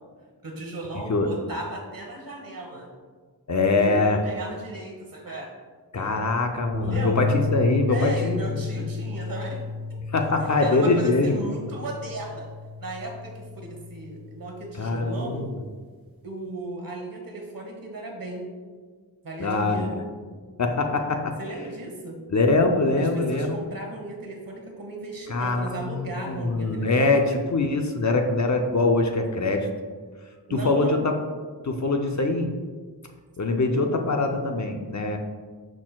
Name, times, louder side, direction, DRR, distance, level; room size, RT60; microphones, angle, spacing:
voice 1, 0.4-2.9 3.7-5.5 6.0-6.3 6.8-7.3 7.9-9.6 10.6-12.5 12.8-15.4 16.2-18.5 19.2-20.0 21.4-22.2 23.0-27.4 30.5-31.0, right 2 dB, 50° right, 1 dB, 1.3 m, -35 dB
voice 2, 3.5-4.2 5.9-8.5 8.8-8.9 10.1-11.3 14.8-15.6 19.4-19.9 20.6-21.3 22.3-23.6 25.3-29.7 30.5-31.1 31.6-32.5 33.4-35.2, left 3 dB, 40° left, 4 dB, 0.6 m, -23 dB
sound 1, 6.7-15.1, left 4 dB, 30° right, 1.3 m, -32 dB
12.0 x 4.3 x 2.3 m, 1.5 s
wide cardioid pair, 105°, 43 cm